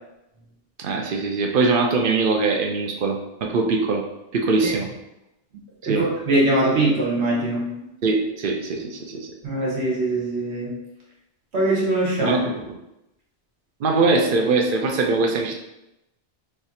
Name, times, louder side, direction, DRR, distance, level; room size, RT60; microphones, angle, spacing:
voice 1, 0.8-4.0 4.3-4.9 5.8-6.1 8.0-9.3 12.2-12.8 13.8-15.5, right 3 dB, 60° right, 2 dB, 0.7 m, -22 dB
voice 2, 5.8-7.7 9.4-10.7 11.5-12.4, right 2 dB, 85° right, -4 dB, 1.4 m, -22 dB
3.3 x 2.4 x 4.0 m, 0.89 s
omnidirectional pair, 1.1 m